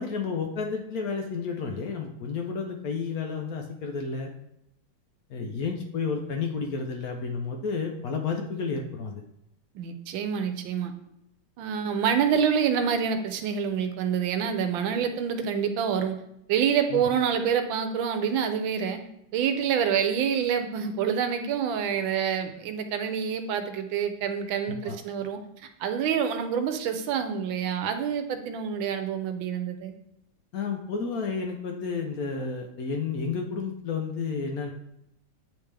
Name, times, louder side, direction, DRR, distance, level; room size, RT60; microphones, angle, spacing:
voice 1, 0.0-4.3 5.3-9.2 16.9-17.0 24.8-25.0 30.5-34.7, left 5 dB, 70° left, 2 dB, 0.8 m, -31 dB
voice 2, 9.7-10.9 11.6-16.2 16.5-19.0 19.3-25.4 25.8-29.9, right 7 dB, 75° right, 7 dB, 1.4 m, -27 dB
8.8 x 3.5 x 3.3 m, 0.80 s
omnidirectional pair, 2.2 m